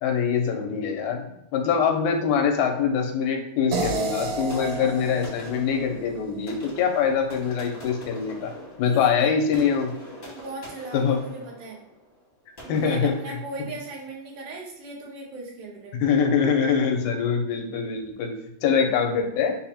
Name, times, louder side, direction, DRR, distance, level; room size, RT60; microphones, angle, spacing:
voice 1, 0.0-8.5 8.8-9.9 10.9-11.2 12.7-13.1 16.0-18.3 18.6-19.6, left 6 dB, 90° left, 3 dB, 2.0 m, -24 dB
sound 1, 3.7-6.8, right 3 dB, 75° right, 1.9 m, -31 dB
sound 2, 4.5-14.1, equal, 55° left, 0.7 m, -44 dB
voice 2, 10.2-11.8 12.6-16.0, right 2 dB, 90° right, -3 dB, 2.5 m, -38 dB
5.5 x 2.1 x 4.3 m, 0.82 s
omnidirectional pair, 3.4 m